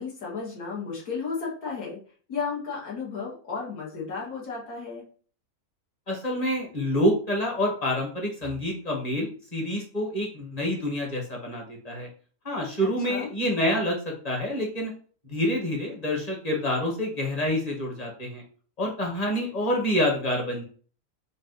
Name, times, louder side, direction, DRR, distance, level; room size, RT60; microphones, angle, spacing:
voice 1, 0.0-2.0 2.3-5.1 12.8-13.3, left 5 dB, 75° left, -4 dB, 1.7 m, -33 dB
voice 2, 6.1-12.1 12.4-14.0 14.2-14.9 15.3-18.4 18.8-20.6, equal, 30° left, 0 dB, 1.0 m, -27 dB
4.0 x 2.5 x 3.8 m, 0.42 s
omnidirectional pair, 1.6 m